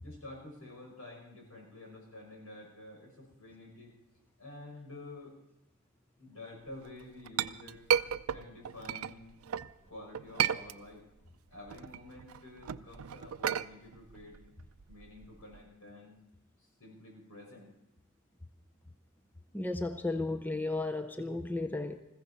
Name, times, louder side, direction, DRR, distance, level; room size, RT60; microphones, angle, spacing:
voice 1, 0.0-3.9 4.4-5.3 6.2-7.9 8.3-9.4 9.9-11.0 11.5-14.4 14.9-16.2 16.6-17.7, left 2 dB, 75° left, 0 dB, 5.8 m, -49 dB
Chink clink, 6.9-9.7 10.1-11.2 11.5-15.6, right 9 dB, 80° right, 0.5 m, -34 dB
voice 2, 19.5-22.0, left 2 dB, 10° left, 6 dB, 0.6 m, -34 dB
20.5 x 15.5 x 4.2 m, 0.87 s
head